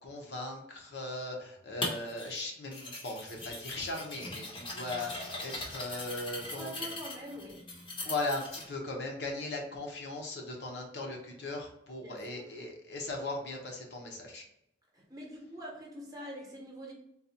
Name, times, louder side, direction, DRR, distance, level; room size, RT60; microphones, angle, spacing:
voice 1, 0.0-6.9 8.0-14.4, left 2 dB, 65° left, 0 dB, 0.8 m, -38 dB
sound 1, 1.8-2.4 2.7-8.6, left 2 dB, 30° left, 0.7 m, -40 dB
voice 2, 6.6-7.7 12.0-12.5 14.9-16.9, equal, 20° right, -2 dB, 0.9 m, -45 dB
3.9 x 2.3 x 2.8 m, 0.77 s
head